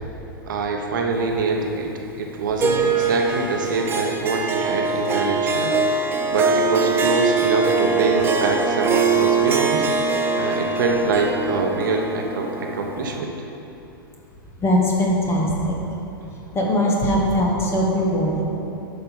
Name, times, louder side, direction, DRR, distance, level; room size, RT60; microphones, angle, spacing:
voice 1, 0.5-1.9 2.2-5.7 6.3-9.9 10.4-13.3, right 3 dB, 60° right, 2 dB, 1.0 m, -24 dB
Harp, 2.6-13.2, right 4 dB, 20° right, 0.7 m, -22 dB
voice 2, 14.6-15.8 16.5-18.4, equal, 20° left, -2 dB, 1.7 m, -20 dB
9.7 x 5.6 x 5.5 m, 2.9 s
figure-of-eight pair, 95°, 12 cm